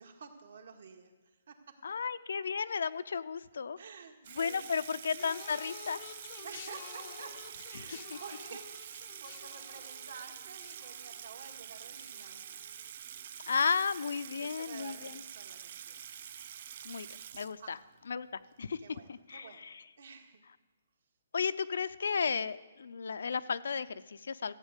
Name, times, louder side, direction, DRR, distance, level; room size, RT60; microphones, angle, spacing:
voice 1, 0.0-1.8 3.8-4.8 6.4-7.4 7.7-12.6 14.3-16.0 17.6-17.9 18.8-20.4, right 6 dB, 60° right, 5 dB, 1.9 m, -51 dB
voice 2, 1.8-3.8 4.4-6.0 13.5-15.1 16.8-17.1 17.3-17.8 18.1-18.8 19.1-19.8 21.3-24.5, left 6 dB, 70° left, 14 dB, 0.5 m, -34 dB
Water tap faucet / Sink (filling or washing), 4.2-18.0, right 10 dB, 35° right, 0.4 m, -47 dB
sound 1, 5.0-14.4 14.7-15.2 16.1-16.2, left 9 dB, 30° left, 0.6 m, -52 dB
14.5 x 8.1 x 8.1 m, 1.2 s
hypercardioid pair, 170°, 0 cm